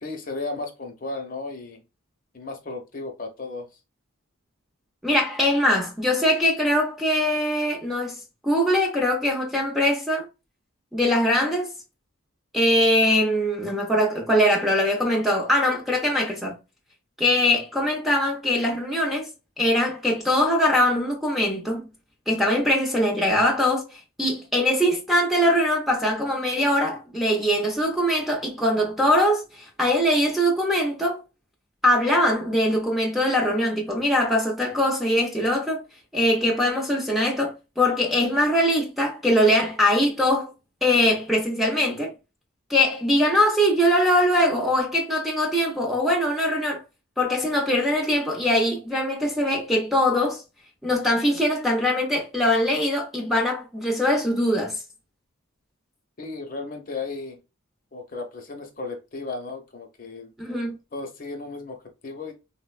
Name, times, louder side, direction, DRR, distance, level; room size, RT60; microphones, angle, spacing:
voice 1, 0.0-1.8 2.3-3.7 56.2-57.4 57.9-60.3 60.9-62.3, left 3 dB, 40° left, 0.6 m, -34 dB
voice 2, 5.0-8.2 8.4-10.3 10.9-11.7 12.5-16.5 17.2-19.3 19.6-21.9 22.3-31.2 31.8-35.8 36.1-40.5 40.8-42.1 42.7-46.8 47.2-50.4 50.8-54.8 60.4-60.8, left 1 dB, ahead, 0.5 m, -22 dB
3.8 x 2.1 x 2.3 m
head